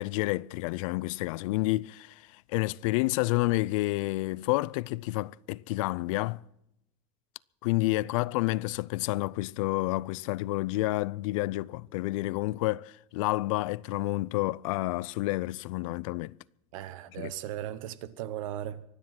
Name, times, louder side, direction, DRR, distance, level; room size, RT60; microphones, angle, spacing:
voice 1, 0.0-6.4 7.6-16.3 17.2-17.3, left 20 dB, 80° left, 0.5 m, -29 dB
voice 2, 16.7-18.8, right 12 dB, 90° right, 1.1 m, -37 dB
24.0 x 9.8 x 5.9 m
supercardioid pair, 155°, 17 cm